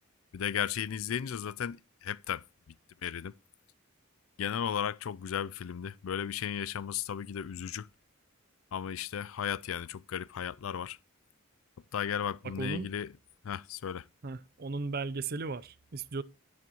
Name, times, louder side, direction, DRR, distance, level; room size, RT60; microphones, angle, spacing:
voice 1, 0.3-2.7 3.0-3.3 4.4-7.9 8.7-11.0 11.9-13.1 13.4-14.1, left 8 dB, 80° left, 0.4 m, -35 dB
voice 2, 12.4-12.9 14.2-16.2, right 3 dB, 50° right, 0.6 m, -36 dB
17.5 x 6.4 x 3.0 m
head